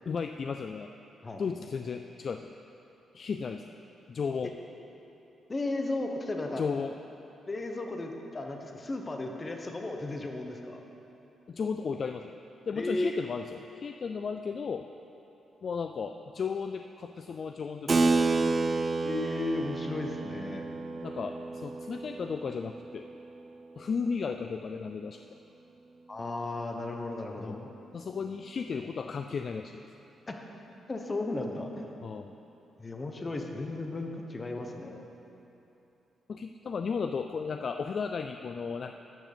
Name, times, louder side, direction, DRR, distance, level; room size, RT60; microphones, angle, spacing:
voice 1, 0.1-0.9 1.4-2.5 3.1-3.8 4.1-4.5 6.6-7.0 11.5-12.4 12.7-14.9 15.6-18.4 21.0-23.1 23.8-25.2 27.4-29.8 32.0-32.4 36.3-38.9, left 5 dB, 45° left, 7 dB, 0.3 m, -34 dB
voice 2, 5.5-6.6 7.5-10.8 12.8-13.2 19.0-20.6 26.1-27.6 30.3-30.4 30.9-31.9 32.8-35.0, left 2 dB, 25° left, 3 dB, 1.1 m, -35 dB
Keyboard (musical), 17.9-23.9, right 3 dB, 30° right, 0.5 m, -30 dB
12.0 x 6.2 x 6.8 m, 3.0 s
cardioid pair, 115°, 0 cm